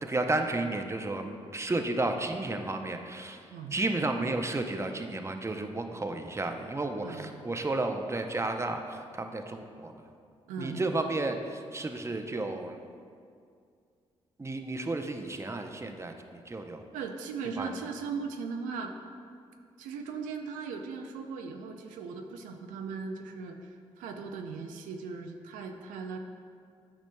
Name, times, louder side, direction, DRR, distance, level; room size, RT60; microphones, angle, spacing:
voice 1, 0.0-3.4 3.7-9.9 10.6-12.8 14.4-16.8 17.6-17.7, right 2 dB, 20° right, 5 dB, 0.6 m, -32 dB
voice 2, 3.5-3.8 7.0-7.4 10.5-10.9 16.9-18.9 19.8-23.7 24.0-26.2, right 5 dB, 90° right, 4 dB, 0.4 m, -38 dB
9.1 x 5.1 x 2.2 m, 2.3 s
supercardioid pair, 45°, 13 cm